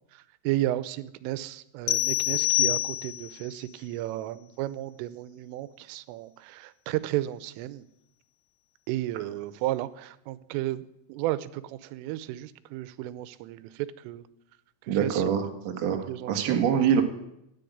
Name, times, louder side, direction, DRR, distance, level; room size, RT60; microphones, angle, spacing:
voice 1, 0.1-7.8 8.9-10.8 11.1-14.3 14.8-15.5 16.1-16.7, right 15 dB, 90° right, 16 dB, 3.3 m, -33 dB
sound 1, 1.9-3.4, left 16 dB, 85° left, 3.4 m, -26 dB
voice 2, 14.9-15.5 15.8-17.0, right 8 dB, 55° right, 3 dB, 1.8 m, -24 dB
13.5 x 9.8 x 9.2 m, 0.81 s
omnidirectional pair, 5.6 m